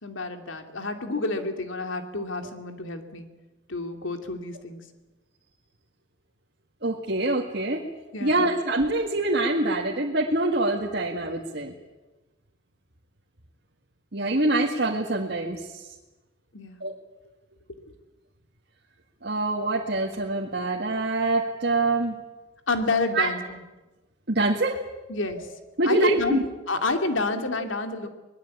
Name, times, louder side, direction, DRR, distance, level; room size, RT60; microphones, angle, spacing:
voice 1, 0.0-3.3 3.7-4.8 8.1-8.5 16.5-16.8 22.7-23.6 25.1-25.5 25.8-26.4 26.7-28.1, left 2 dB, 75° left, 6 dB, 2.5 m, -29 dB
voice 2, 6.8-7.8 8.2-11.7 14.1-15.9 16.8-17.0 19.2-22.2 23.1-23.3 24.3-24.8 25.8-26.4, right 2 dB, 55° right, -1 dB, 2.0 m, -25 dB
24.0 x 20.5 x 8.6 m, 1.1 s
head